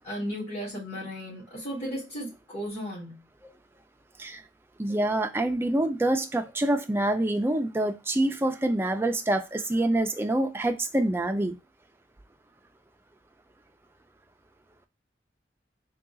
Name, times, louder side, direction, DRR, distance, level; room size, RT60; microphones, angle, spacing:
voice 1, 0.0-3.2, equal, 40° left, 2.4 m, -35 dB
voice 2, 4.8-11.6, right 1 dB, 15° right, 0.4 m, -26 dB
3.7 x 2.3 x 3.7 m
head